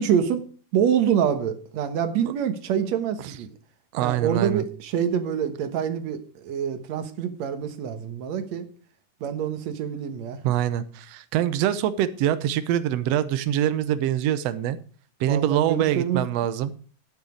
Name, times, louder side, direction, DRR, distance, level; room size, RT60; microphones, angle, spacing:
voice 1, 0.0-3.5 4.0-8.7 9.2-10.6 15.2-16.2, right 8 dB, 60° right, 9 dB, 2.2 m, -26 dB
voice 2, 3.9-4.6 10.4-14.8 15.2-16.7, right 11 dB, 90° right, 12 dB, 1.4 m, -24 dB
11.5 x 9.2 x 5.1 m, 0.39 s
omnidirectional pair, 4.0 m